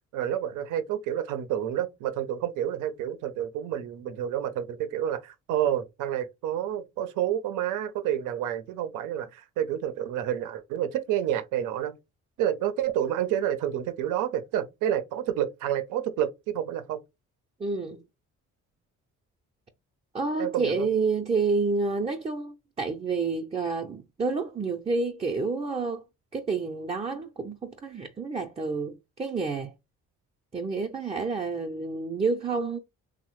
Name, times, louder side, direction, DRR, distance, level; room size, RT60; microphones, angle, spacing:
voice 1, 0.1-12.0 12.4-17.0 20.4-20.9, right 10 dB, 90° right, 0.5 m, -29 dB
voice 2, 17.6-18.0 20.1-26.0 26.3-29.7 30.5-32.8, right 4 dB, 20° right, 0.4 m, -29 dB
3.2 x 2.1 x 3.0 m
cardioid pair, 90°, 30 cm